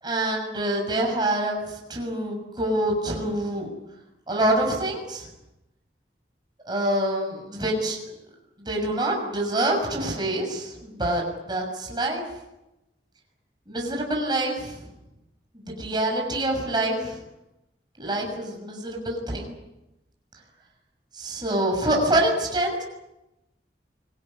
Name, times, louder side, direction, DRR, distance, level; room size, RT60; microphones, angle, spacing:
voice 1, 0.0-3.7 4.3-5.3 6.6-8.0 8.6-11.2 11.5-12.2 13.7-14.8 15.5-17.2 18.0-19.6 21.1-22.8, right 1 dB, 25° right, 0 dB, 6.5 m, -26 dB
25.0 x 19.0 x 9.8 m, 0.93 s
head